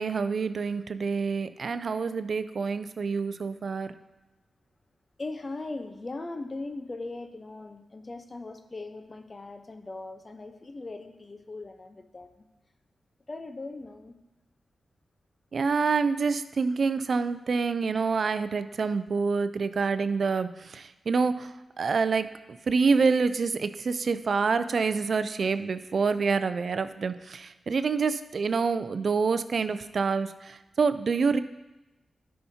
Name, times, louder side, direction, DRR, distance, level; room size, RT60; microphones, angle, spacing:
voice 1, 0.0-3.9 15.5-31.4, right 5 dB, 65° right, 12 dB, 0.4 m, -27 dB
voice 2, 5.2-12.5 13.3-14.1, left 2 dB, 40° left, 7 dB, 0.8 m, -39 dB
11.5 x 5.6 x 2.8 m, 1.0 s
cardioid pair, 50°, 0 cm